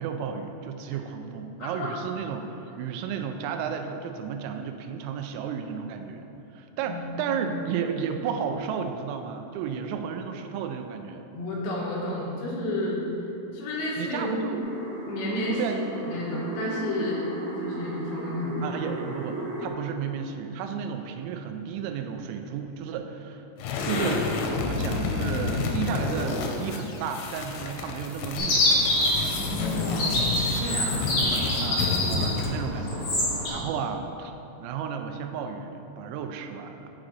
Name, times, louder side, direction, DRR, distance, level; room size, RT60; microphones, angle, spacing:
voice 1, 0.0-6.3 6.5-11.2 14.0-14.6 15.4-15.9 18.6-23.4 23.8-24.3 24.6-28.9 31.6-33.1 33.5-34.3 34.6-36.9, right 7 dB, 85° right, 6 dB, 3.2 m, -33 dB
voice 2, 1.6-1.9 6.8-7.4 11.4-13.0 13.5-14.5 15.1-15.6 16.0-17.2 17.6-18.8 29.3-30.3 30.6-31.0 32.9-33.7, left 1 dB, 70° left, -4 dB, 2.9 m, -31 dB
sound 1, 14.6-19.7, right 1 dB, 70° right, 3.5 m, -36 dB
sound 2, 23.6-32.7, left 3 dB, 90° left, 3.2 m, -30 dB
Chirp tweet, 28.4-33.5, left 1 dB, 55° left, 2.4 m, -26 dB
7.1 x 6.3 x 3.8 m, 3.0 s
omnidirectional pair, 5.8 m